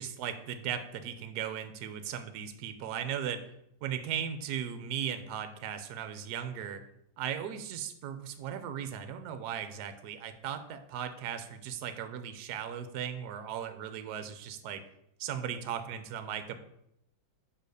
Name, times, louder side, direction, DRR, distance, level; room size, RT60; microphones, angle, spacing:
voice 1, 0.0-3.4 3.8-6.8 7.2-14.8 15.2-16.6, right 9 dB, 65° right, 10 dB, 1.2 m, -37 dB
5.3 x 5.3 x 6.4 m, 0.81 s
omnidirectional pair, 2.1 m